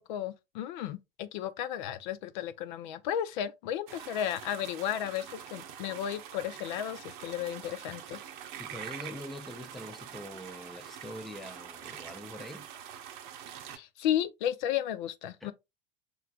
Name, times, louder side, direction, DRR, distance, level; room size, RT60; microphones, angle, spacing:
voice 1, 0.0-8.2 13.7-15.5, left 10 dB, 50° left, 0.6 m, -34 dB
sound 1, 3.9-13.8, right 9 dB, 55° right, 0.7 m, -45 dB
voice 2, 8.6-12.7 15.4-15.5, equal, ahead, 0.5 m, -44 dB
6.1 x 3.3 x 2.3 m
figure-of-eight pair, 80°, 30 cm